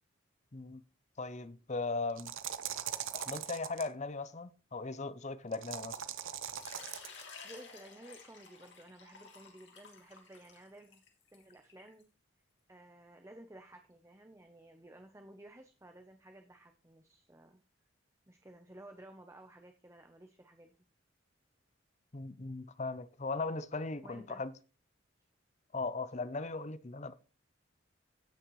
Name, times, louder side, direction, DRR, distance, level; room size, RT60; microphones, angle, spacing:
voice 1, 1.2-2.3 3.1-6.0 22.1-24.5 25.7-27.1, left 3 dB, 35° left, 0.7 m, -38 dB
sound 1, 2.1-3.9 5.5-7.2, right 9 dB, 85° right, 1.0 m, -40 dB
Water / Liquid, 6.5-12.0, left 5 dB, 60° left, 2.9 m, -53 dB
voice 2, 7.4-11.0 11.3-12.0 12.7-17.6 18.3-20.7 24.0-24.4, right 1 dB, 15° right, 0.8 m, -54 dB
17.0 x 6.4 x 3.1 m
head